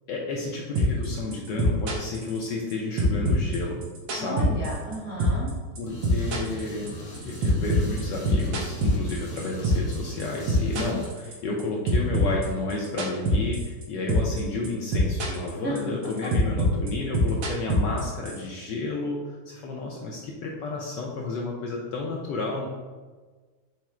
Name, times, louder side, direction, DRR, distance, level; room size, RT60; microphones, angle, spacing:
voice 1, 0.1-3.8 4.1-4.5 5.8-22.7, left 3 dB, 75° left, -2 dB, 1.0 m, -31 dB
sound 1, 0.8-1.1 1.3-2.7 3.0-5.0 5.2-5.5 5.8-10.0 10.2-11.6 11.9-13.8 14.1-14.4 14.6-15.5 15.8-18.4, equal, 70° right, 1.4 m, -23 dB
voice 2, 4.2-5.5 15.6-15.8, right 2 dB, 15° right, -7 dB, 0.4 m, -33 dB
sound 2, 5.9-11.1, equal, 50° left, 1.1 m, -40 dB
4.8 x 2.0 x 4.2 m, 1.4 s
omnidirectional pair, 2.3 m